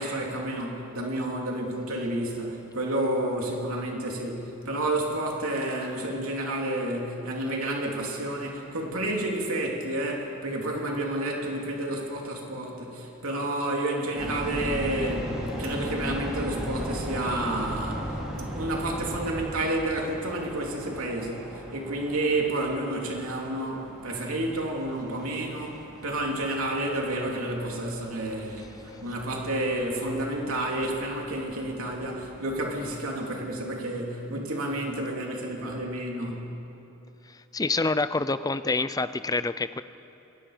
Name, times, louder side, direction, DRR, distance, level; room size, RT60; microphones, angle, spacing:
voice 1, 0.0-36.4, right 1 dB, 75° right, -1 dB, 3.1 m, -30 dB
sound 1, 14.1-33.0, equal, 5° right, 4.0 m, -38 dB
voice 2, 37.5-39.8, left 3 dB, 15° left, 13 dB, 0.5 m, -27 dB
27.0 x 22.0 x 5.0 m, 3.0 s
head